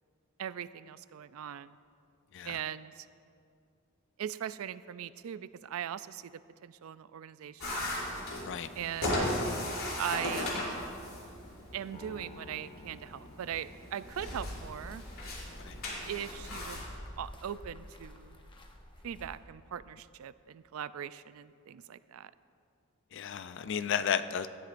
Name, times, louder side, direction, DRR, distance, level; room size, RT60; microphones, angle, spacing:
voice 1, 0.4-1.8 2.4-3.1 4.2-7.9 8.8-9.3 10.0-10.5 11.7-15.0 16.0-16.9 17.2-18.4 19.0-22.3, right 9 dB, 75° right, 16 dB, 0.4 m, -40 dB
sound 1, 7.6-16.9, left 1 dB, 75° left, 3.2 m, -37 dB
Piano, 11.9-14.4, left 2 dB, 40° left, 1.5 m, -53 dB
sound 2, 14.1-19.7, left 1 dB, 25° left, 0.8 m, -47 dB
voice 2, 23.1-24.5, left 8 dB, 60° left, 12 dB, 0.4 m, -33 dB
17.5 x 13.5 x 2.5 m, 2.4 s
head